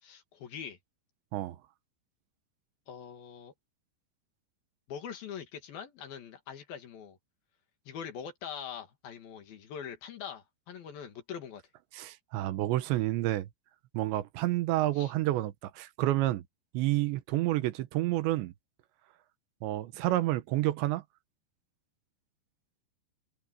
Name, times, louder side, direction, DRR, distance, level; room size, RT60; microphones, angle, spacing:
voice 1, 0.0-0.8 2.9-3.5 4.9-7.2 7.9-11.6 14.9-15.1, left 8 dB, 60° left, 3.3 m, -43 dB
voice 2, 11.9-13.5 13.9-16.4 16.7-18.5 19.6-21.0, right 16 dB, 80° right, 3.1 m, -29 dB
omnidirectional pair, 5.3 m